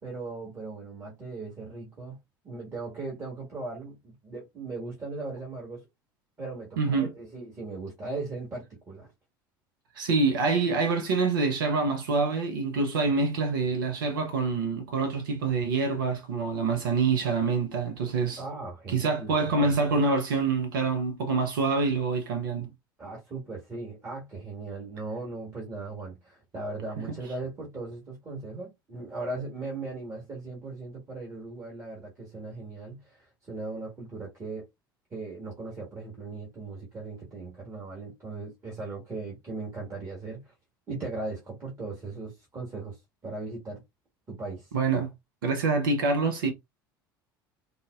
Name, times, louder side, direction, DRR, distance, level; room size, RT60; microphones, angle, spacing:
voice 1, 0.0-2.2 2.4-5.9 6.4-9.1 18.4-19.8 23.0-34.6 35.1-40.5 40.9-43.8 44.3-44.7, right 3 dB, 25° right, 1.4 m, -38 dB
voice 2, 6.8-7.1 9.9-18.4 18.9-22.7 44.7-45.1 45.4-46.5, right 4 dB, 70° right, 0.6 m, -26 dB
3.8 x 2.1 x 2.2 m
figure-of-eight pair, 65°, 12 cm